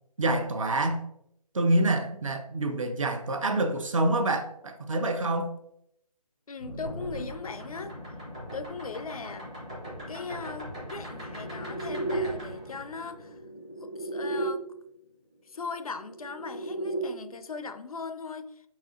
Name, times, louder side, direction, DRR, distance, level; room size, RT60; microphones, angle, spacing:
voice 1, 0.2-1.0 1.5-5.5, right 2 dB, 55° right, 0.6 m, -26 dB
voice 2, 6.5-8.0 8.5-9.5 10.1-13.4 13.8-14.6 15.5-18.5, left 4 dB, 65° left, 0.4 m, -39 dB
sound 1, 6.6-14.5 15.8-17.0, right 1 dB, 10° right, 0.6 m, -36 dB
4.8 x 4.2 x 2.4 m
figure-of-eight pair, 170°, 20 cm